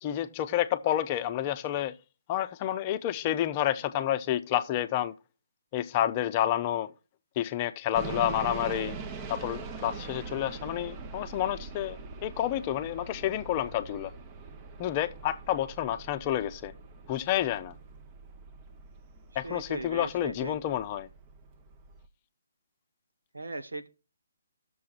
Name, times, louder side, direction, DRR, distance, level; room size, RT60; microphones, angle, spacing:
voice 1, 0.0-1.9 2.3-5.1 5.7-6.9 7.4-9.0 9.3-14.1 14.8-16.7 17.1-17.7 19.4-21.1, left 12 dB, 30° left, 0.6 m, -29 dB
sound 1, 7.9-22.1, right 4 dB, 25° right, 0.9 m, -43 dB
voice 2, 19.4-20.6 23.3-23.9, right 2 dB, 90° right, 1.2 m, -38 dB
16.0 x 6.9 x 2.5 m
figure-of-eight pair, 145°, 0 cm